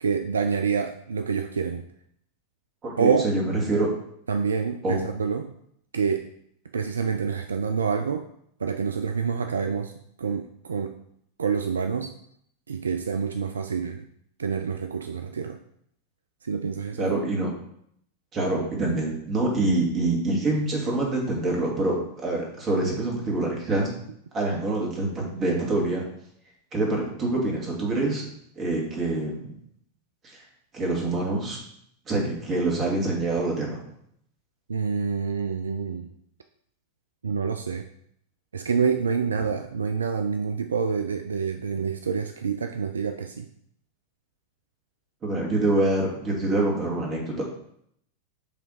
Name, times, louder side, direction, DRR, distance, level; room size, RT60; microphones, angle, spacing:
voice 1, 0.0-1.8 3.0-3.3 4.3-5.5 5.9-6.2 6.7-8.3 8.6-9.9 10.2-11.0 11.4-12.1 12.7-14.0 14.4-15.6 16.4-17.3 34.7-36.1 37.2-37.9 38.5-43.5, right 6 dB, 70° right, 7 dB, 0.3 m, -27 dB
voice 2, 2.8-3.9 4.8-5.0 17.0-17.5 18.3-23.9 24.3-26.0 26.7-28.3 28.6-29.5 30.2-30.4 30.7-31.6 32.1-33.8 45.2-47.4, right 2 dB, 25° right, -2 dB, 2.0 m, -25 dB
7.3 x 3.4 x 3.9 m, 0.70 s
figure-of-eight pair, 90°, 0 cm